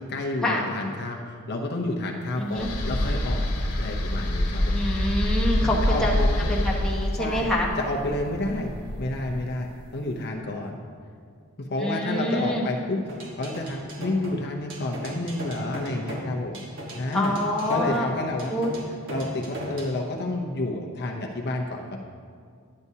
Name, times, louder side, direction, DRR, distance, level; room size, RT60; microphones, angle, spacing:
voice 1, 0.0-3.5 3.7-4.7 5.6-6.5 7.1-7.5 7.8-8.7 9.0-10.8 11.6-16.6 16.9-17.3 17.7-18.5 19.1-22.0, left 2 dB, 45° left, 1 dB, 0.6 m, -30 dB
voice 2, 2.4-2.7 4.7-6.1 6.5-7.7 11.8-12.7 17.1-18.1 18.5-18.7, equal, 5° left, -4 dB, 1.0 m, -26 dB
sound 1, 2.5-9.7, left 1 dB, 85° left, 1.3 m, -26 dB
sound 2, 13.1-20.0, equal, 60° right, 1.3 m, -36 dB
10.5 x 9.5 x 2.7 m, 2.2 s
head